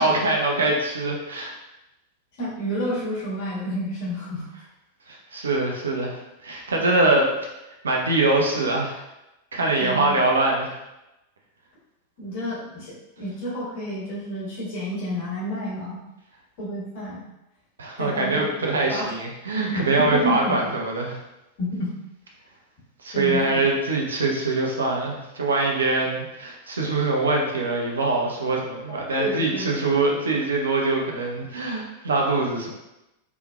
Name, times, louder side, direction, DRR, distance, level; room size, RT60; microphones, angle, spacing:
voice 1, 0.0-1.6 5.1-7.3 7.8-9.0 9.5-10.8 17.8-21.2 23.0-32.7, right 2 dB, 70° right, -1 dB, 0.6 m, -23 dB
voice 2, 2.4-4.5 9.8-10.2 12.2-16.0 16.6-17.2 18.0-18.4 18.9-19.1 19.7-20.6 21.6-21.9 23.1-23.6 29.2-29.7, equal, 50° left, -7 dB, 1.3 m, -29 dB
3.5 x 2.9 x 2.2 m, 0.93 s
figure-of-eight pair, 90°, 0 cm